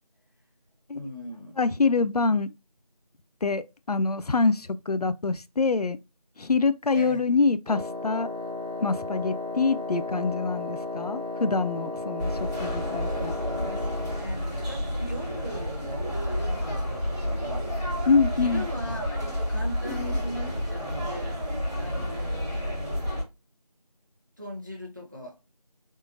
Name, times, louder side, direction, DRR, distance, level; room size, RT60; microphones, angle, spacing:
voice 1, 0.9-1.6 6.9-7.2 13.0-17.8 18.3-21.5 21.8-23.1 24.4-25.4, equal, 30° right, 1.0 m, -40 dB
voice 2, 1.6-2.5 3.4-6.0 6.4-8.3 8.8-13.3 18.1-18.7, left 4 dB, 75° left, 0.4 m, -25 dB
Wind instrument woodwind instrument, 7.7-14.3, left 3 dB, 65° right, 1.2 m, -34 dB
sound 1, 12.2-23.2, equal, 30° left, 2.2 m, -30 dB
3.6 x 3.5 x 2.6 m
figure-of-eight pair, 175°, 20 cm